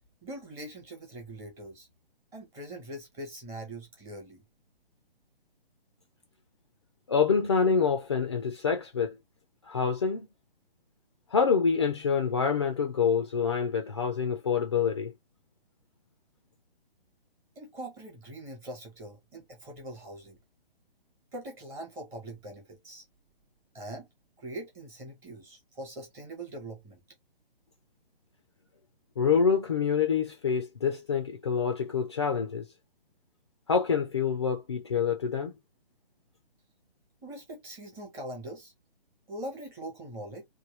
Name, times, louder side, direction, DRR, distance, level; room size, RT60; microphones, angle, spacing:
voice 1, 0.2-1.9 2.3-4.4 17.6-20.4 21.3-23.0 23.7-24.1 24.4-27.0 37.2-38.7 39.3-40.4, right 1 dB, 10° right, 0.7 m, -42 dB
voice 2, 7.1-9.2 9.7-10.3 11.3-15.1 29.2-32.6 33.7-35.5, left 6 dB, 30° left, 0.4 m, -26 dB
3.1 x 2.3 x 3.0 m
figure-of-eight pair, 135°, 30 cm